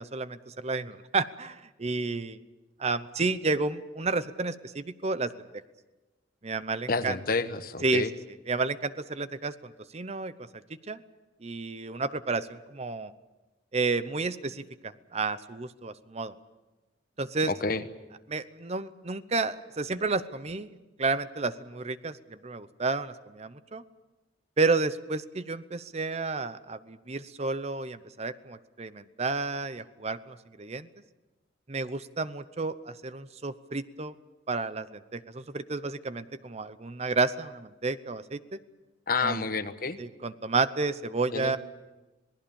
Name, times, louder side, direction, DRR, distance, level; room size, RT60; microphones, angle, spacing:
voice 1, 0.0-2.4 2.8-5.3 6.4-7.2 7.8-8.0 8.5-10.3 10.9-11.0 11.4-13.1 13.7-16.3 17.2-17.5 18.3-23.8 24.6-30.9 31.7-34.1 34.5-38.4 39.2-39.4 40.0-41.6, right 3 dB, 35° right, 13 dB, 0.8 m, -31 dB
voice 2, 6.9-8.1 17.5-17.8 39.1-40.0 41.3-41.6, left 4 dB, 50° left, 10 dB, 1.2 m, -29 dB
26.5 x 19.5 x 7.1 m, 1.1 s
head